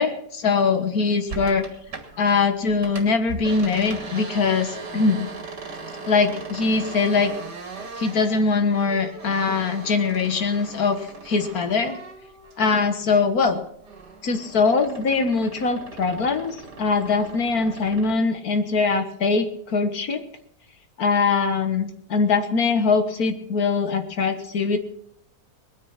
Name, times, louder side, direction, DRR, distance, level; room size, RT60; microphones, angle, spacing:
voice 1, 0.0-1.7 2.2-5.3 6.1-7.3 8.0-11.0 11.3-12.0 12.6-13.6 14.2-20.2 21.0-24.8, left 4 dB, 65° left, 7 dB, 2.0 m, -22 dB
sound 1, 1.3-2.4 2.7-13.0 13.4-18.2, right 3 dB, 80° right, 2.9 m, -38 dB
20.0 x 9.8 x 5.8 m, 0.68 s
omnidirectional pair, 1.8 m